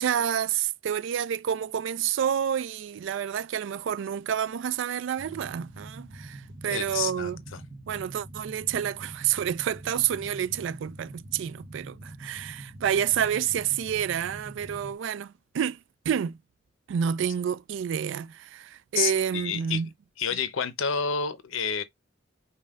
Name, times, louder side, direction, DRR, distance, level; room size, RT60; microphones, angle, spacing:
voice 1, 0.0-7.4 7.9-15.8 16.1-16.4 16.9-19.9, right 8 dB, 70° right, 0.3 m, -29 dB
sound 1, 5.2-15.0, right 2 dB, 35° right, 0.6 m, -45 dB
voice 2, 6.7-7.6 18.9-19.9 20.2-21.8, left 6 dB, 85° left, 0.7 m, -30 dB
5.3 x 2.3 x 3.6 m
head